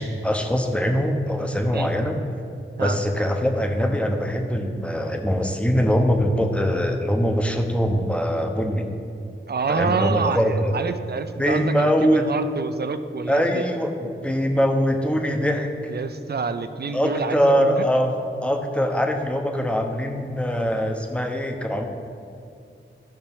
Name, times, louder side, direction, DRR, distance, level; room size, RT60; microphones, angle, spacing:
voice 1, 0.0-2.2 2.8-8.9 9.7-10.7 11.4-12.3 13.3-15.7 16.9-18.1 18.4-21.8, equal, 5° left, 4 dB, 0.8 m, -22 dB
voice 2, 9.5-13.6 15.9-17.9, right 5 dB, 50° right, 10 dB, 0.5 m, -27 dB
13.0 x 5.7 x 3.6 m, 2.4 s
wide cardioid pair, 70°, 21 cm